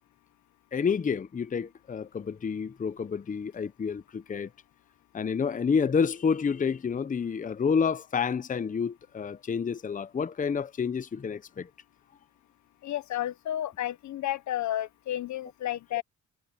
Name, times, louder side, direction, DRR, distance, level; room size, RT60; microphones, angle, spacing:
voice 1, 0.7-4.5 5.1-11.7, left 6 dB, 25° left, 0.7 m, -29 dB
voice 2, 12.8-16.0, left 12 dB, 70° left, 1.0 m, -32 dB
cardioid pair, 90°, 30 cm